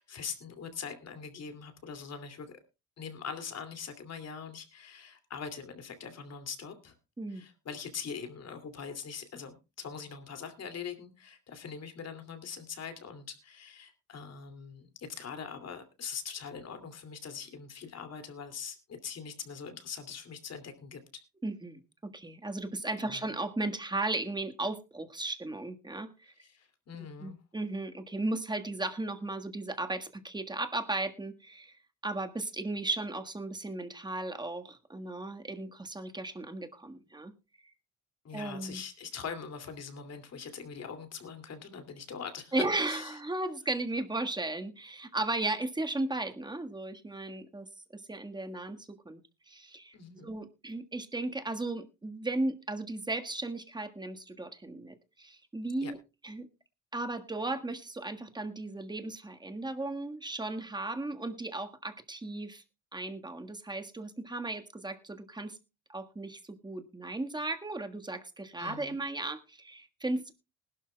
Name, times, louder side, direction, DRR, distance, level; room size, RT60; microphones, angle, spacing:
voice 1, 0.0-2.5 3.0-6.9 7.3-21.0 23.0-23.3 26.4-27.4 38.2-43.2 49.9-50.3 55.8-55.9 68.6-69.0, left 6 dB, 55° left, 8 dB, 2.6 m, -42 dB
voice 2, 21.4-26.3 27.2-31.8 32.0-37.3 38.3-38.8 42.5-49.2 49.5-50.0 50.2-56.0 56.2-56.5 56.9-62.6 62.9-65.6 65.9-70.3, right 2 dB, 15° right, 6 dB, 1.5 m, -36 dB
20.0 x 12.0 x 2.3 m, 0.27 s
cardioid pair, 90°, 30 cm